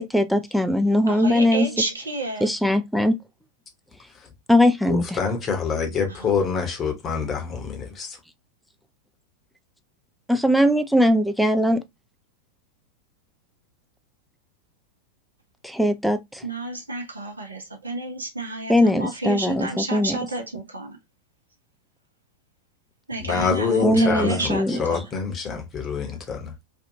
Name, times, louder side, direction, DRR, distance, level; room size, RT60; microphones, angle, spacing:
voice 1, 0.0-1.7 2.4-3.2 4.5-5.2 10.3-11.8 15.6-16.4 18.7-20.2 23.8-24.8, left 1 dB, ahead, 0.4 m, -20 dB
voice 2, 1.1-2.5 6.1-6.3 16.4-21.0 23.1-25.1, right 2 dB, 75° right, 0.8 m, -30 dB
voice 3, 4.9-8.1 23.2-24.4 24.8-26.5, left 5 dB, 25° left, 0.9 m, -26 dB
2.7 x 2.4 x 2.7 m
figure-of-eight pair, 90°, 0 cm